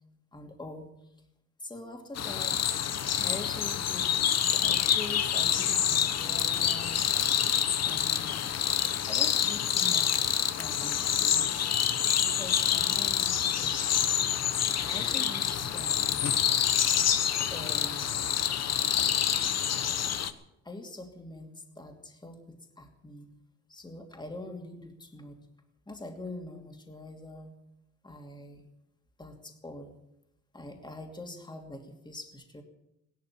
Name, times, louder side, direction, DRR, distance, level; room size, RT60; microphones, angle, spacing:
voice 1, 0.3-0.9 1.6-2.8 3.2-7.1 7.8-8.5 9.1-11.6 12.2-14.5 14.8-16.3 17.5-18.2 20.6-23.3 23.7-25.5 25.9-27.5 28.0-28.7 29.2-30.0 30.5-32.6, left 1 dB, 15° left, 3 dB, 2.6 m, -44 dB
sound 1, 2.2-20.3, left 9 dB, 55° left, 1.1 m, -27 dB
16.5 x 12.0 x 7.2 m, 0.86 s
cardioid pair, 90°, 30 cm